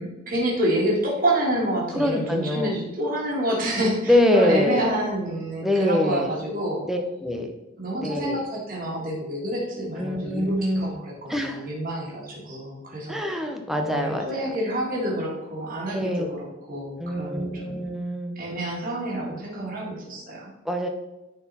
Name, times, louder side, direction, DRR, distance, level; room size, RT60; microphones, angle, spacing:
voice 1, 0.0-6.9 7.8-13.2 13.8-17.8 18.4-20.5, right 1 dB, 40° right, -3 dB, 1.9 m, -28 dB
voice 2, 1.9-2.7 4.1-4.9 5.6-6.3 6.8-7.5 8.0-8.4 10.0-10.9 11.3-11.7 13.1-14.5 15.9-16.3 17.0-18.4 20.6-20.9, left 1 dB, ahead, 3 dB, 0.7 m, -24 dB
9.4 x 4.2 x 4.2 m, 1.0 s
head